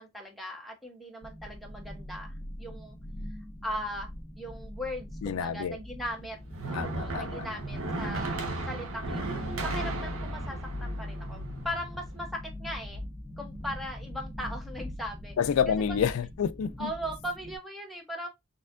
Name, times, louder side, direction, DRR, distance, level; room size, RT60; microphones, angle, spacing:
voice 1, 0.0-3.0 3.6-4.1 4.4-6.4 6.7-8.4 8.7-11.4 11.6-13.0 13.4-15.3 15.7-15.8 16.8-18.3, equal, ahead, 1.0 m, -38 dB
sound 1, 1.2-17.6, left 1 dB, 25° left, 1.1 m, -42 dB
voice 2, 5.2-5.8 6.7-7.5 15.4-16.9, left 7 dB, 85° left, 0.4 m, -28 dB
sound 2, 6.1-12.2, right 2 dB, 85° right, 1.0 m, -36 dB
4.2 x 3.5 x 2.5 m
head